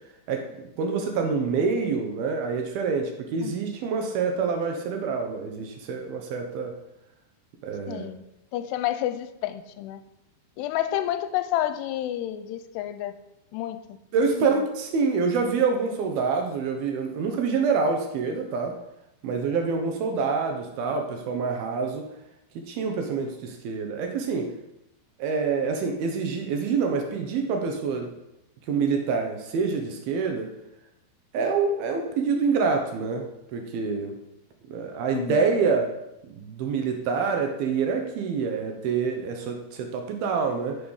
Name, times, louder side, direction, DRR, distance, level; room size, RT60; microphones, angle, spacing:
voice 1, 0.3-6.7 7.6-8.1 14.1-18.7 19.2-22.1 22.7-24.5 25.2-28.1 28.7-30.5 31.3-33.3 33.5-34.1 34.7-35.9 36.4-40.8, right 5 dB, 70° right, 4 dB, 2.8 m, -26 dB
voice 2, 7.9-8.2 8.5-10.0 10.6-13.2 13.5-14.5 35.1-35.4, left 12 dB, 85° left, 11 dB, 2.7 m, -30 dB
9.2 x 7.1 x 6.3 m, 0.88 s
omnidirectional pair, 4.9 m